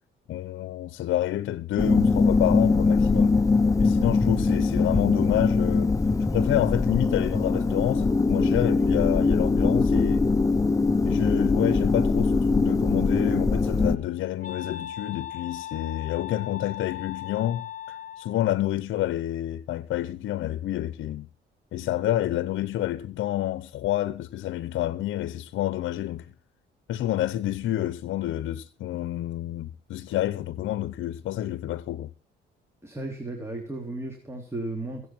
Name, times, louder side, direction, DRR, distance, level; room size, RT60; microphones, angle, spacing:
voice 1, 0.3-3.4 3.8-5.9 6.3-10.3 11.0-21.3 21.7-26.3 26.9-32.1, left 13 dB, 75° left, 0.8 m, -28 dB
sound 1, 1.8-14.0, left 3 dB, 15° left, 0.9 m, -22 dB
Wind instrument woodwind instrument, 13.4-18.5, left 10 dB, 40° left, 1.5 m, -39 dB
voice 2, 32.8-35.1, right 2 dB, 15° right, 3.2 m, -34 dB
23.5 x 7.9 x 4.5 m
cardioid pair, 90°, 20 cm